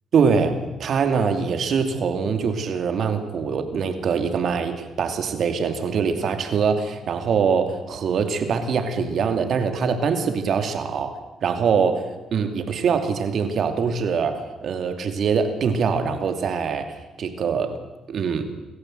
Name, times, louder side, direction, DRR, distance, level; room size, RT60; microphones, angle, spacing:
voice 1, 0.1-17.8 18.1-18.4, right 6 dB, 60° right, 7 dB, 2.7 m, -23 dB
26.5 x 14.5 x 7.9 m, 1.1 s
cardioid pair, 90°, 0 cm